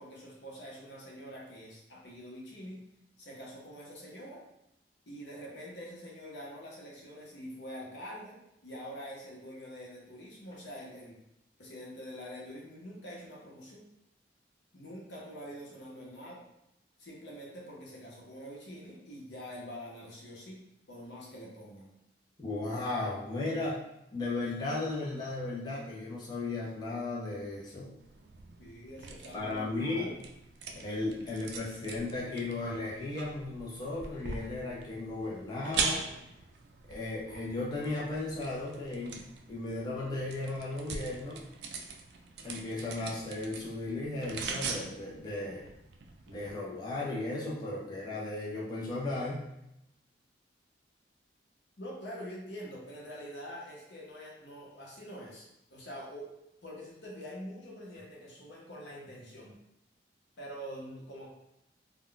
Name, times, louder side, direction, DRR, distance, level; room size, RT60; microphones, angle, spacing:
voice 1, 0.0-2.8 3.2-4.4 5.1-11.2 11.6-13.9 14.7-16.4 17.0-20.6 20.9-22.0 28.6-30.1 51.8-56.3 56.6-59.6 60.4-61.3, equal, 80° left, -3 dB, 0.8 m, -45 dB
voice 2, 22.4-23.8 24.1-27.9 29.3-30.1 30.8-36.0 36.9-41.4 42.4-45.6 46.3-49.5, left 2 dB, 25° left, -6 dB, 0.5 m, -35 dB
sound 1, 28.0-46.5, right 4 dB, 65° right, 0.3 m, -42 dB
2.3 x 2.2 x 3.7 m, 0.83 s
head